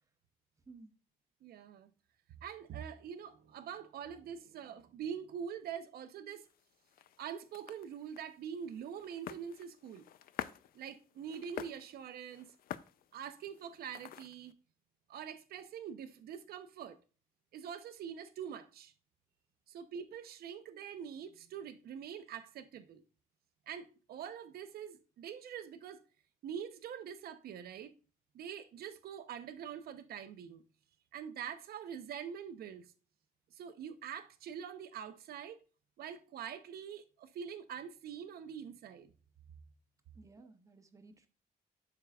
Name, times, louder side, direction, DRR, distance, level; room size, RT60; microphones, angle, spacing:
voice 1, 0.7-1.0 40.1-41.3, right 3 dB, 20° right, 0.8 m, -56 dB
voice 2, 1.4-1.9 2.4-6.5 7.2-10.1 10.7-12.5 13.1-14.5 15.1-17.0 17.5-18.9 19.7-23.0 23.7-26.0 26.4-27.9 28.3-30.6 31.1-32.9 33.5-35.6 36.0-39.1 40.4-40.5, right 8 dB, 75° right, 0.8 m, -44 dB
sound 1, 6.4-14.5, left 11 dB, 70° left, 0.5 m, -49 dB
11.5 x 4.7 x 2.4 m
cardioid pair, 165°, 16 cm